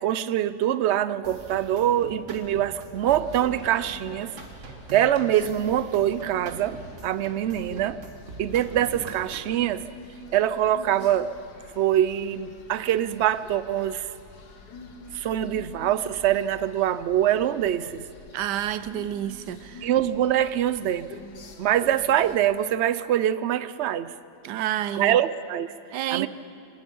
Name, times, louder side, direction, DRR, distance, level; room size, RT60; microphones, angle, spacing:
voice 1, 0.0-4.3 4.9-6.8 7.0-8.0 8.4-9.8 10.3-11.3 11.8-14.1 15.1-18.1 19.8-21.2 21.6-24.1 25.0-25.7 26.1-26.3, right 11 dB, 70° right, 0.6 m, -24 dB
sound 1, 1.2-9.6, right 3 dB, 50° right, 2.0 m, -43 dB
sound 2, 2.9-22.4, left 2 dB, 75° left, 2.0 m, -46 dB
voice 2, 18.3-19.9 24.4-25.2 25.9-26.3, right 12 dB, 90° right, 1.3 m, -29 dB
25.0 x 20.0 x 5.4 m
omnidirectional pair, 1.8 m